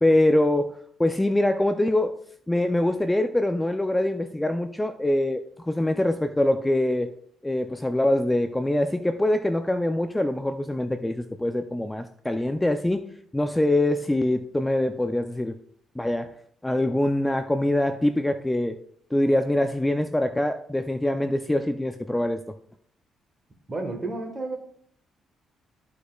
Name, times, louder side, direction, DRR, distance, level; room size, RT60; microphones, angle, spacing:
voice 1, 0.0-2.1 2.5-7.1 7.4-15.5 16.0-16.3 16.6-18.8 19.1-22.4, left 1 dB, 10° left, 8 dB, 0.5 m, -24 dB
voice 2, 23.7-24.6, right 2 dB, 25° right, 1 dB, 1.4 m, -31 dB
13.5 x 5.0 x 2.3 m, 0.65 s
cardioid pair, 90°, 0 cm